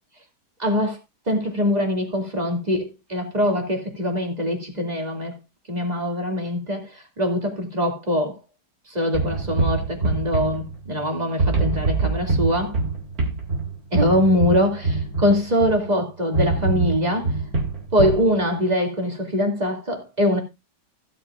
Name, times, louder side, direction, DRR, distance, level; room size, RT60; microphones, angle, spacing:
voice 1, 0.6-1.0 1.3-5.4 5.7-8.4 8.9-12.8 13.9-17.4 17.9-20.4, equal, 25° right, 2.4 m, -23 dB
sound 1, 9.1-11.1 11.4-15.9 16.3-18.3, right 3 dB, 55° right, 2.5 m, -24 dB
16.0 x 8.5 x 2.4 m
omnidirectional pair, 1.9 m